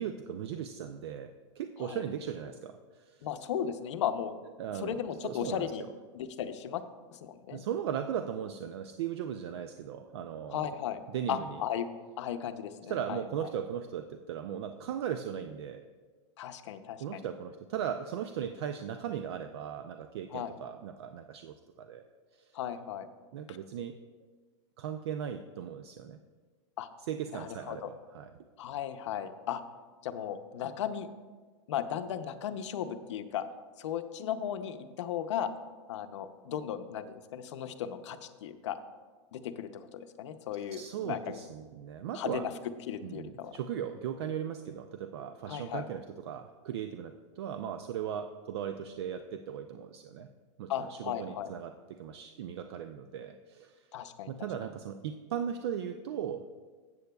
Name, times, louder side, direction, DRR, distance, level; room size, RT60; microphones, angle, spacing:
voice 1, 0.0-3.3 4.6-5.7 7.5-10.7 11.1-11.6 12.9-15.8 17.0-22.0 22.4-22.5 23.3-23.9 24.8-26.2 27.1-28.3 40.7-42.4 43.0-50.3 50.6-53.8 54.3-56.4, right 9 dB, 60° right, 8 dB, 0.4 m, -38 dB
voice 2, 3.2-4.4 4.7-5.8 6.1-6.8 7.1-7.6 10.5-11.0 11.3-11.9 12.2-13.5 16.4-17.2 20.3-20.5 22.5-23.1 23.5-23.6 26.8-26.9 27.3-27.9 28.6-29.6 30.0-31.1 31.7-33.5 33.8-35.5 35.9-38.8 39.3-41.4 42.1-42.5 42.9-43.5 45.5-45.8 50.7-51.5 53.9-54.3, left 9 dB, 75° left, 9 dB, 0.6 m, -36 dB
13.5 x 8.3 x 2.3 m, 1.4 s
supercardioid pair, 170°, 15 cm